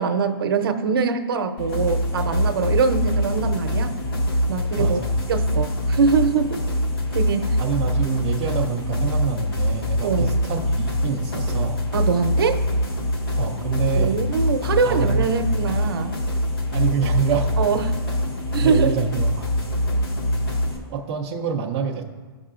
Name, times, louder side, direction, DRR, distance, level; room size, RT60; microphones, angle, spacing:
voice 1, 0.0-3.9 4.5-5.0 5.3-6.6 7.1-7.6 10.0-10.3 11.9-12.6 13.9-16.2 17.6-18.0 18.5-19.0, right 5 dB, 60° right, 7 dB, 0.7 m, -23 dB
sound 1, 1.6-20.8, equal, 60° left, 1.7 m, -24 dB
voice 2, 4.8-5.1 7.6-11.8 13.4-14.2 14.8-15.4 16.7-17.5 18.6-19.5 20.9-22.0, right 7 dB, 15° right, -1 dB, 0.3 m, -27 dB
13.0 x 5.5 x 2.4 m, 1.4 s
hypercardioid pair, 170°, 14 cm